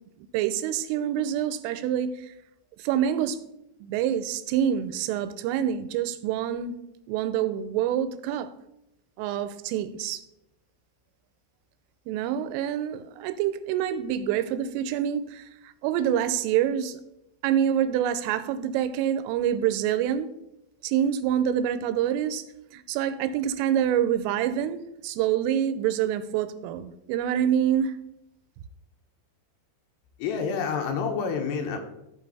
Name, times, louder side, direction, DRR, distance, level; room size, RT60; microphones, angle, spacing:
voice 1, 0.2-2.3 2.8-3.4 3.8-6.8 7.1-8.5 9.2-10.2 12.1-17.0 17.4-20.3 20.8-22.4 22.7-28.0, right 10 dB, 90° right, 3.3 m, -26 dB
voice 2, 30.2-31.8, left 6 dB, 70° left, 2.9 m, -28 dB
15.0 x 5.6 x 4.1 m
omnidirectional pair, 5.6 m